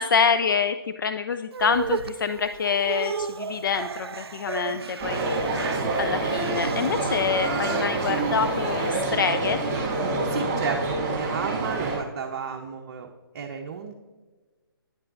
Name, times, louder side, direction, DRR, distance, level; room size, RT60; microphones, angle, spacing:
voice 1, 0.0-5.6 6.0-9.6, left 6 dB, 55° left, 9 dB, 0.4 m, -26 dB
sound 1, 1.5-8.9, right 6 dB, 85° right, 0.4 m, -35 dB
sound 2, 5.0-12.0, right 2 dB, 25° right, 2.1 m, -27 dB
voice 2, 10.3-13.9, right 5 dB, 45° right, 2 dB, 0.7 m, -32 dB
9.6 x 7.6 x 2.5 m, 1.3 s
figure-of-eight pair, 150°, 13 cm